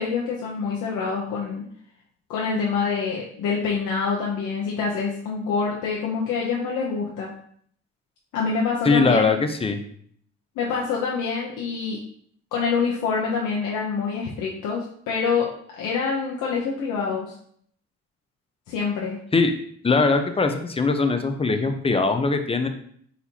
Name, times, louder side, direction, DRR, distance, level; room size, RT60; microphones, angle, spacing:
voice 1, 0.0-1.6 2.3-7.3 8.3-9.3 10.6-12.0 12.5-15.5 15.8-17.3 18.7-19.2, left 5 dB, 85° left, -4 dB, 0.8 m, -26 dB
voice 2, 8.8-9.8 19.3-19.5 19.8-22.7, left 4 dB, 20° left, 7 dB, 0.5 m, -21 dB
4.3 x 4.1 x 2.8 m, 0.62 s
cardioid pair, 90°, 30 cm